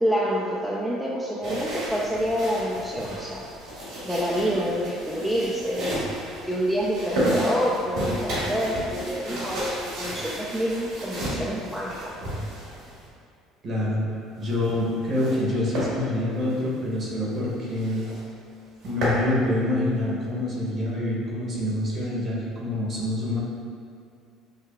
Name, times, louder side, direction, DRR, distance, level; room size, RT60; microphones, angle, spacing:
voice 1, 0.0-3.4 4.0-12.1, equal, 5° right, -6 dB, 0.4 m, -27 dB
sound 1, 1.4-13.1 14.4-15.4 15.7-15.9 16.4-16.6 17.0-17.1 17.4-17.5 17.8-18.2 18.6-19.2, equal, 75° right, 1.5 m, -32 dB
voice 2, 13.6-14.0 14.4-18.0 18.8-23.4, left 1 dB, 45° right, -4 dB, 1.0 m, -26 dB
6.5 x 2.3 x 2.3 m, 2.4 s
cardioid pair, 110°, 0 cm